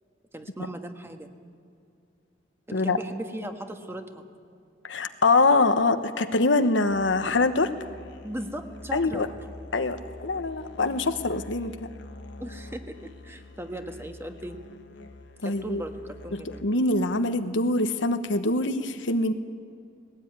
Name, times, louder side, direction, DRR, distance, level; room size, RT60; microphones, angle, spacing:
voice 1, 0.3-1.3 2.7-4.3 8.2-9.3 12.4-14.6 15.4-16.6, right 1 dB, 15° right, 5 dB, 1.4 m, -37 dB
voice 2, 4.8-7.7 8.9-9.3 9.7-11.7 15.4-15.8 16.3-19.3, left 3 dB, 80° left, 9 dB, 1.1 m, -24 dB
Musical instrument, 6.8-17.0, left 2 dB, 65° left, 1.4 m, -46 dB
19.0 x 18.0 x 9.6 m, 2.5 s
head